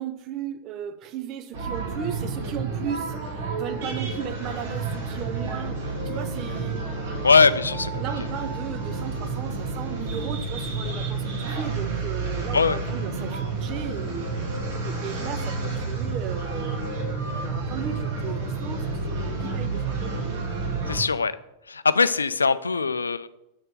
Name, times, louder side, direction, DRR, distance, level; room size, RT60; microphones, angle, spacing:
voice 1, 0.0-7.3 8.0-14.5 14.8-20.0, right 8 dB, 35° right, 10 dB, 0.6 m, -36 dB
sound 1, 1.5-21.0, right 3 dB, 55° right, 2.0 m, -30 dB
voice 2, 7.2-7.9 12.5-12.8 20.9-21.4 21.7-23.3, left 4 dB, 75° left, 16 dB, 0.3 m, -21 dB
6.5 x 4.3 x 6.5 m, 0.87 s
figure-of-eight pair, 90°, 0 cm